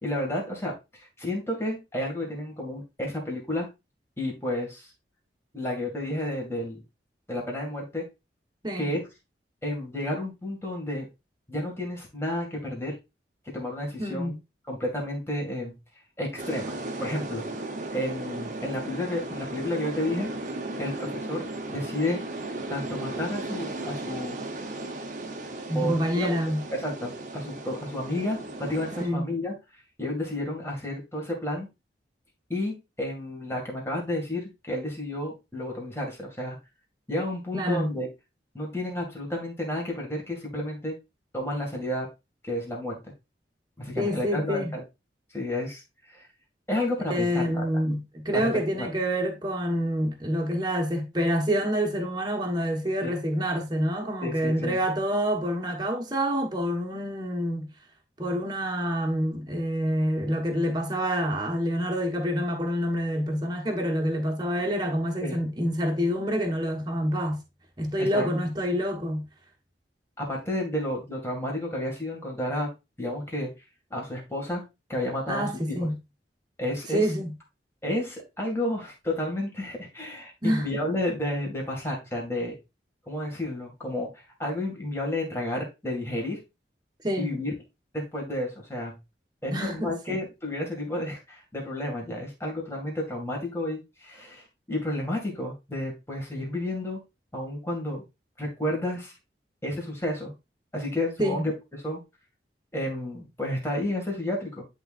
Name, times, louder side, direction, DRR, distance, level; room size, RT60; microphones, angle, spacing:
voice 1, 0.0-3.7 4.2-4.9 5.5-6.8 7.3-8.0 8.8-9.0 9.6-11.1 11.5-13.0 13.5-14.3 14.7-15.8 16.2-17.5 17.9-20.3 20.8-22.2 22.7-24.4 25.7-26.4 26.7-29.5 30.0-31.7 32.5-36.6 37.1-38.1 38.5-40.9 41.3-42.1 42.4-43.0 43.8-44.8 45.3-46.2 46.7-47.6 48.3-48.4 48.8-48.9 53.0-53.1 54.2-54.8 65.2-65.4 68.0-68.3 70.2-72.7 73.0-73.5 73.9-74.6 74.9-75.9 76.6-77.1 77.8-82.6 83.1-86.4 87.2-87.5 87.9-89.0 89.4-97.0 97.3-98.0 98.4-99.1 99.6-100.3 100.7-101.5 101.8-102.0 102.7-104.6, left 1 dB, 15° left, 2.1 m, -31 dB
voice 2, 14.0-14.4 25.7-26.6 29.0-29.3 37.5-37.9 44.0-44.7 47.1-57.7 58.2-67.4 67.8-69.2 75.3-76.0 76.9-77.3 80.4-80.7 87.0-87.4 89.5-90.2 101.2-101.5, equal, 25° right, 1.3 m, -27 dB
sound 1, 16.4-29.1, right 2 dB, 45° right, 0.9 m, -36 dB
11.0 x 3.8 x 2.5 m
head